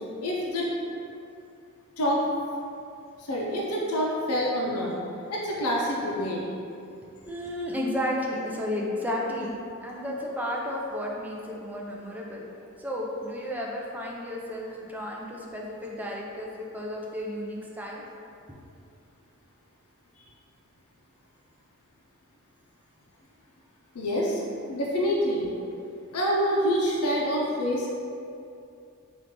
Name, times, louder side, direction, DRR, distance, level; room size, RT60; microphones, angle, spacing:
voice 1, 0.2-0.7 2.0-2.2 3.2-4.9 5.3-6.4 23.9-24.4 24.7-25.5 26.1-27.9, equal, 85° left, -3 dB, 0.7 m, -26 dB
voice 2, 7.3-9.5 9.8-12.5 12.8-18.0, left 1 dB, 5° right, -2 dB, 0.4 m, -32 dB
4.6 x 2.4 x 3.6 m, 2.5 s
head